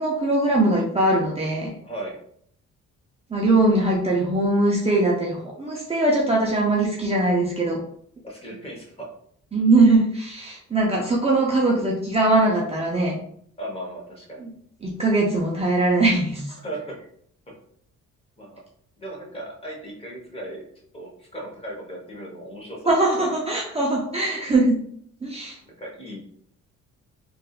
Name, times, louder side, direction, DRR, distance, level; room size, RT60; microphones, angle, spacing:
voice 1, 0.0-1.7 3.3-7.8 9.5-13.2 14.4-14.5 14.8-16.6 22.9-24.8 25.2-25.6, right 2 dB, 20° right, -3 dB, 0.6 m, -21 dB
voice 2, 1.8-2.2 8.2-9.1 13.6-14.5 16.6-16.9 18.4-18.6 19.0-20.7 20.9-23.3 25.8-26.2, right 1 dB, 20° left, -2 dB, 1.2 m, -36 dB
3.5 x 2.6 x 2.4 m, 0.65 s
cardioid pair, 90°, 30 cm